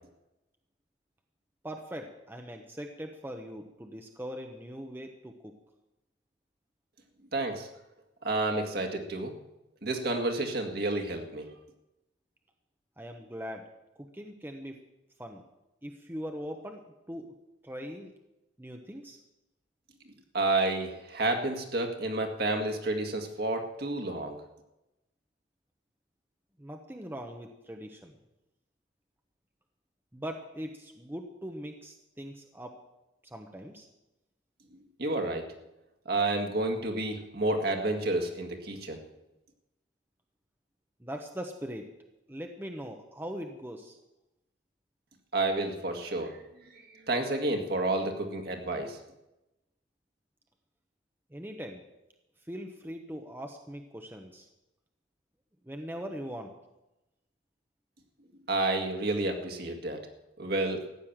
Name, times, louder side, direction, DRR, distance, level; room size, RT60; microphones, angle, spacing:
voice 1, 1.6-5.5 13.0-13.7 14.0-14.8 15.2-15.4 15.8-17.3 17.6-18.1 18.6-19.2 26.6-28.2 30.1-32.8 33.2-33.9 41.0-41.9 42.3-44.0 51.3-51.8 52.4-54.5 55.6-56.5, equal, 10° right, 3 dB, 1.0 m, -41 dB
voice 2, 7.3-7.7 8.2-9.3 9.8-11.5 20.3-24.4 35.0-35.5 36.1-39.0 45.3-46.4 47.1-49.0 58.5-60.0 60.4-60.8, right 2 dB, 55° right, 4 dB, 2.1 m, -30 dB
15.0 x 9.6 x 7.3 m, 0.95 s
head